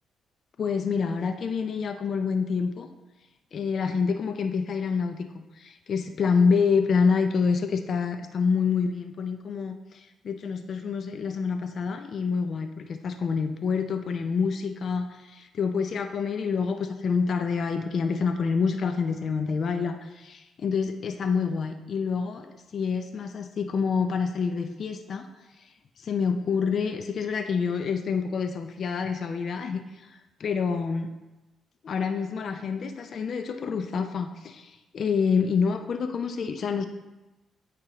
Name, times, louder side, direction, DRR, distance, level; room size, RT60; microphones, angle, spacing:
voice 1, 0.6-2.9 3.5-25.3 25.6-31.1 31.8-36.9, left 5 dB, 55° left, 8 dB, 0.4 m, -27 dB
8.5 x 4.5 x 3.0 m, 1.1 s
cardioid pair, 90°, 0 cm